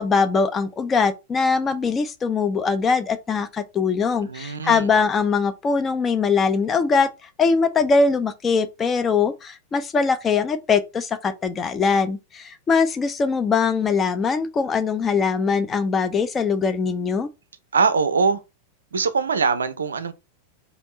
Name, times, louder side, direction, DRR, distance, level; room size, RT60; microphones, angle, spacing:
voice 1, 0.0-7.1 7.4-17.3, left 5 dB, 20° left, 0.4 m, -21 dB
voice 2, 4.2-4.9 17.7-18.4 18.9-20.1, right 5 dB, 70° right, 0.4 m, -22 dB
3.4 x 2.4 x 3.6 m
figure-of-eight pair, 90°, 0 cm